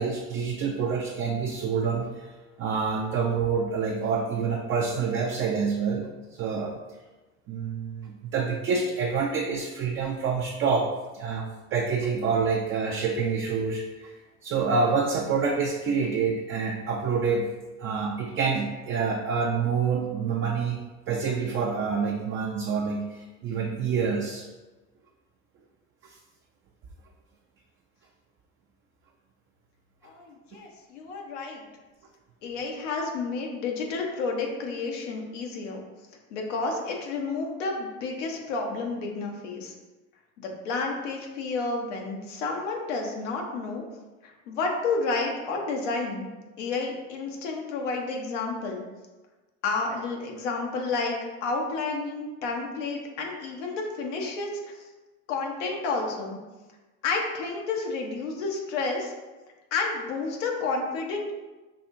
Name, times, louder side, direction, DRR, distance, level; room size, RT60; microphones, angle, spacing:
voice 1, 0.0-2.3 2.6-6.8 7.5-14.2 14.4-17.5 17.8-20.8 21.1-24.5 26.0-26.2, right 5 dB, 35° right, 0 dB, 0.4 m, -27 dB
voice 2, 30.0-31.7 32.4-35.8 36.3-39.7 40.4-43.8 44.2-46.3 46.6-48.8 49.6-54.5 55.3-56.4 57.0-59.1 59.7-61.3, left 3 dB, 85° left, 1 dB, 0.9 m, -30 dB
5.7 x 2.6 x 2.5 m, 1.2 s
supercardioid pair, 100°, 36 cm